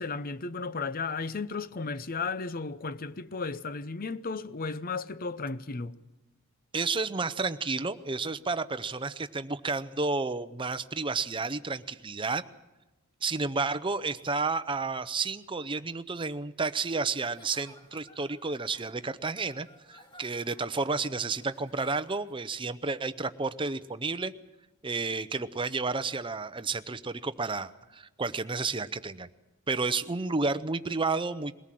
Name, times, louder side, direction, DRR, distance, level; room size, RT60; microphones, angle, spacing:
voice 1, 0.0-6.0, left 4 dB, 40° left, 0.7 m, -34 dB
voice 2, 6.7-12.4 13.2-24.3 24.8-29.3 29.7-31.5, right 4 dB, 20° right, 0.7 m, -31 dB
Giggle / Chuckle chortle, 17.1-22.6, left 1 dB, 20° left, 2.2 m, -58 dB
22.0 x 18.0 x 7.6 m
head